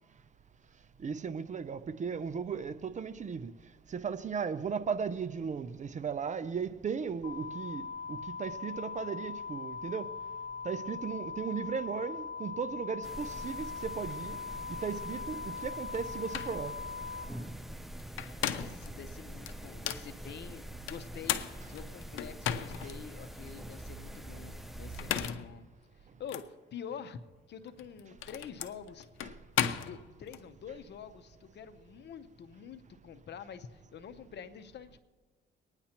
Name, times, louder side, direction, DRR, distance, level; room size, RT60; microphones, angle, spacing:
voice 1, 1.0-3.5 3.9-10.1 10.6-14.4 14.7-16.8 22.8-22.9 29.2-29.3, right 6 dB, 40° right, 0.6 m, -36 dB
sound 1, 7.2-17.2, left 5 dB, 35° left, 3.4 m, -41 dB
sound 2, 13.0-25.3, right 1 dB, ahead, 0.6 m, -45 dB
sound 3, 15.9-16.0 16.3-16.6 18.0-18.9 19.5-20.1 20.9-22.9 23.5-23.6 24.8-25.5 26.3-26.5 27.7-30.4, left 10 dB, 90° left, 0.7 m, -35 dB
voice 2, 18.1-25.6 26.2-27.2 27.5-29.1 29.8-35.0, left 7 dB, 60° left, 0.8 m, -47 dB
23.5 x 9.8 x 2.9 m
cardioid pair, 90°, 20 cm